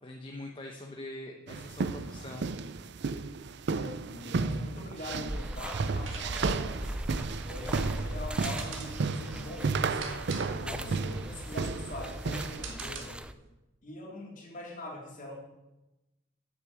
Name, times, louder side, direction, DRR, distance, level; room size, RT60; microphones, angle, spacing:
voice 1, 0.0-2.7 3.2-3.3, left 1 dB, 30° left, 1 dB, 0.9 m, -44 dB
sound 1, 1.5-12.7, right 4 dB, 60° right, 0.5 m, -33 dB
voice 2, 3.7-6.8 7.3-13.2 13.8-15.4, left 1 dB, 45° left, -1 dB, 2.9 m, -43 dB
sound 2, 5.2-13.3, right 1 dB, 5° right, 0.4 m, -39 dB
sound 3, 6.0-13.5, right 5 dB, 85° right, 1.8 m, -45 dB
9.3 x 6.8 x 7.3 m, 1.0 s
head